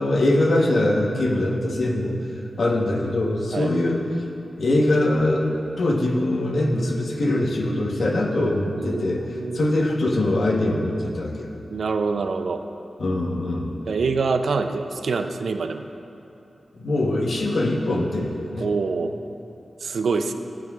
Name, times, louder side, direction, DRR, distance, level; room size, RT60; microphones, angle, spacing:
voice 1, 0.0-2.2 2.6-4.1 4.6-5.5 5.8-11.5 13.0-13.8 16.7-18.7, left 1 dB, 65° left, 0 dB, 1.1 m, -22 dB
voice 2, 8.8-9.7 11.7-12.6 13.9-15.9 18.6-19.1 19.8-20.3, right 4 dB, 85° right, 7 dB, 0.5 m, -25 dB
15.0 x 9.0 x 2.4 m, 3.0 s
wide cardioid pair, 125°, 0 cm